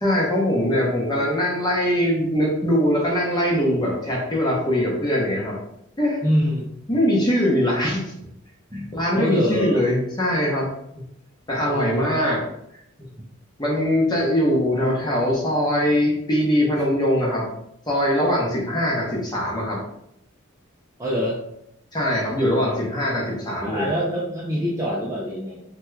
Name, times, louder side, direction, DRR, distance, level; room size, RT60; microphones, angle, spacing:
voice 1, 0.0-5.6 6.0-6.2 6.9-8.1 8.7-10.7 11.5-12.4 13.6-17.5 17.9-19.8 21.9-23.9, equal, 20° left, -3 dB, 0.8 m, -22 dB
voice 2, 6.2-6.7 8.7-8.9 9.1-9.8 11.7-12.1 14.1-14.3 21.0-21.4 23.6-25.6, equal, 15° right, -5 dB, 0.4 m, -25 dB
2.9 x 2.3 x 3.2 m, 0.77 s
head